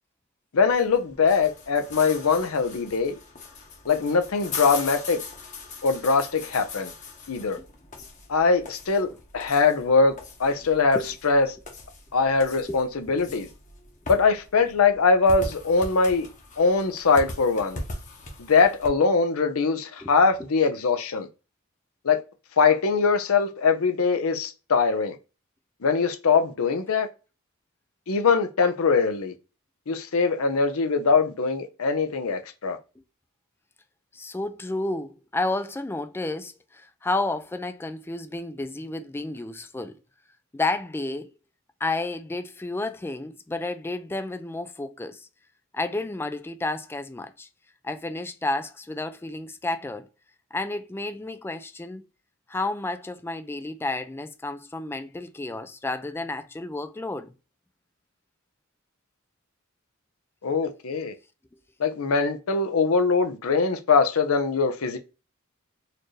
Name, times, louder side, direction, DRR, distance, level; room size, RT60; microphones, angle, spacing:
voice 1, 0.5-3.1 3.9-5.2 5.8-6.9 7.3-7.6 8.3-11.6 12.1-13.5 14.1-16.3 16.6-17.8 18.5-21.3 22.0-22.2 22.6-25.2 25.8-27.1 28.1-29.3 29.9-32.8 60.4-61.1 61.8-65.0, left 4 dB, 75° left, 0.6 m, -22 dB
sound 1, 0.6-18.9, left 3 dB, 35° left, 1.0 m, -40 dB
voice 2, 12.7-13.4 20.0-20.1 32.6-32.7 34.1-40.0 40.5-41.3 41.8-45.3 45.7-47.5 47.8-50.1 50.5-52.0 52.5-57.3, left 2 dB, 10° left, 0.3 m, -31 dB
4.2 x 2.6 x 3.1 m
head